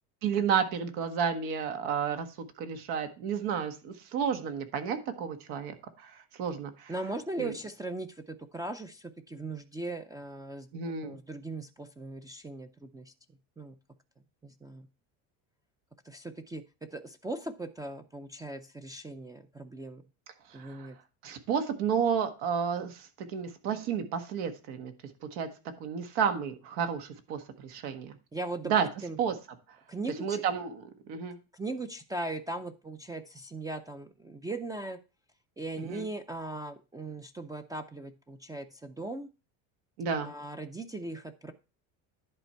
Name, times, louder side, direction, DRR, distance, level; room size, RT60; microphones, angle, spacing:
voice 1, 0.2-2.3 2.6-6.9 7.4-7.5 10.7-11.1 20.5-20.9 21.2-24.9 25.2-25.5 25.8-28.1 28.6-28.9 29.2-29.3 30.2-31.4 35.8-36.1 40.0-40.3, right 7 dB, 80° right, 7 dB, 1.6 m, -31 dB
voice 2, 6.9-10.7 11.0-13.1 13.6-13.8 14.4-14.9 16.0-16.6 16.9-20.0 20.5-21.0 28.3-28.7 29.0-29.2 29.9-30.4 31.5-35.0 35.6-39.3 40.2-41.5, right 2 dB, 10° right, 9 dB, 0.4 m, -39 dB
11.0 x 4.4 x 4.4 m, 0.31 s
cardioid pair, 130°, 38 cm